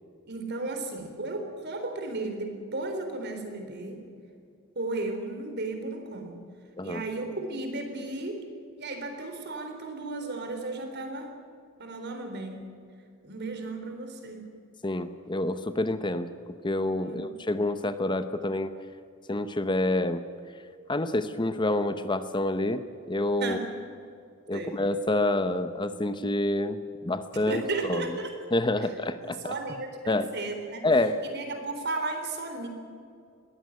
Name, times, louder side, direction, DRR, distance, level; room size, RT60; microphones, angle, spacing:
voice 1, 0.3-4.0 4.8-6.4 6.8-8.5 8.8-11.3 11.8-12.6 13.2-14.5 17.0-17.3 23.4-23.7 24.5-24.8 27.5-28.4 29.2-30.8 31.2-32.7, right 2 dB, 55° right, 5 dB, 3.9 m, -34 dB
voice 2, 14.8-16.3 16.6-18.7 19.3-20.2 20.9-22.8 23.1-23.6 24.5-26.8 27.0-27.6 27.9-28.0 28.5-29.5 30.1-30.3 30.8-31.2, left 2 dB, 20° left, 11 dB, 0.8 m, -27 dB
21.0 x 16.0 x 9.6 m, 2.4 s
head